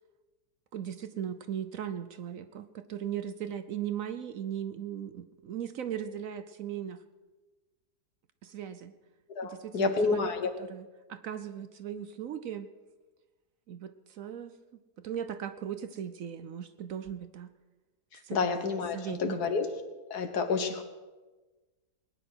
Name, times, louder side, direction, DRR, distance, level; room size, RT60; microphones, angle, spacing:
voice 1, 0.7-7.0 8.4-8.9 9.4-10.3 10.6-12.7 13.7-14.5 15.0-17.5 18.2-18.4 18.9-19.4, right 9 dB, 65° right, 11 dB, 1.0 m, -38 dB
voice 2, 9.3-10.5 18.3-19.7 20.1-20.8, left 5 dB, 70° left, 7 dB, 1.8 m, -29 dB
20.0 x 9.9 x 6.2 m, 1.2 s
omnidirectional pair, 1.7 m